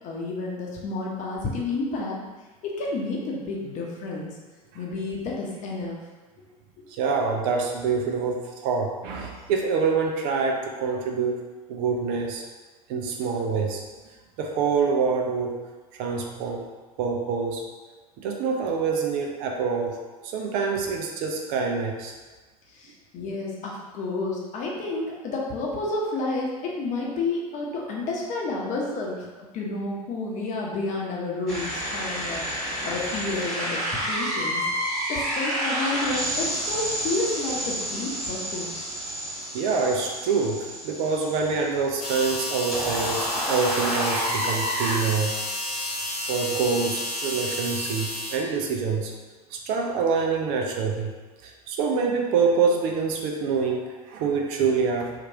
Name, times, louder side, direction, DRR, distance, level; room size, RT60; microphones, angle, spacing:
voice 1, 0.0-2.2 2.6-4.3 4.7-6.0 22.7-29.2 29.5-33.8 34.1-34.7 35.1-38.9, left 2 dB, 40° left, -2 dB, 0.8 m, -30 dB
voice 2, 7.0-11.4 11.7-12.4 12.9-13.8 14.4-15.6 15.9-16.7 17.0-17.6 18.2-20.0 20.3-22.1 39.5-45.4 46.3-49.1 49.5-51.1 51.4-55.1, right 5 dB, 50° right, 1 dB, 0.5 m, -26 dB
sound 1, 31.5-44.9, equal, ahead, 1.4 m, -30 dB
sound 2, 42.0-48.4, left 1 dB, 90° left, 0.5 m, -31 dB
2.9 x 2.4 x 2.9 m, 1.3 s
figure-of-eight pair, 75°, 19 cm